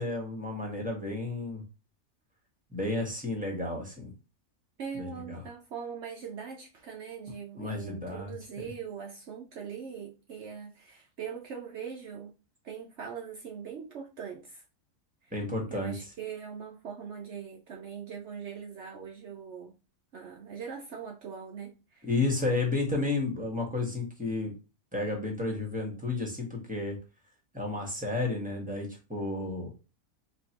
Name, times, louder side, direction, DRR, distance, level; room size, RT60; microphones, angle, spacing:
voice 1, 0.0-1.6 2.7-4.1 5.0-5.4 7.6-8.3 15.3-15.9 22.0-24.5 24.9-27.0 27.5-29.7, left 2 dB, 5° right, 1.1 m, -32 dB
voice 2, 4.8-12.3 12.6-14.6 15.2-15.3 15.7-19.7 20.1-22.1, right 7 dB, 60° right, 0.8 m, -41 dB
4.2 x 2.8 x 2.9 m
omnidirectional pair, 1.6 m